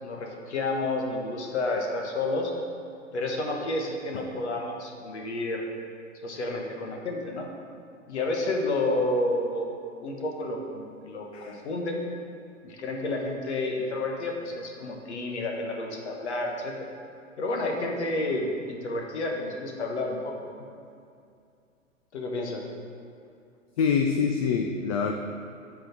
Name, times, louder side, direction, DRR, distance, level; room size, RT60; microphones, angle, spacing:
voice 1, 0.0-2.5 3.1-5.6 6.2-7.5 8.1-9.7 10.0-12.0 12.6-16.8 17.4-20.7 22.1-22.6, left 2 dB, 60° left, 1 dB, 1.4 m, -30 dB
voice 2, 23.8-25.1, left 6 dB, 30° left, 3 dB, 0.4 m, -25 dB
9.0 x 4.8 x 5.9 m, 2.4 s
figure-of-eight pair, 110°, 39 cm